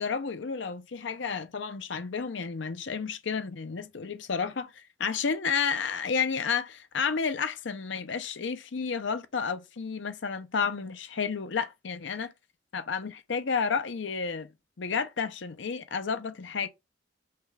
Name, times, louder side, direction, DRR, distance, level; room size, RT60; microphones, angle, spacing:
voice 1, 0.0-12.3 12.7-14.5 14.8-16.7, left 5 dB, 70° left, 0.6 m, -31 dB
5.8 x 2.3 x 3.2 m
head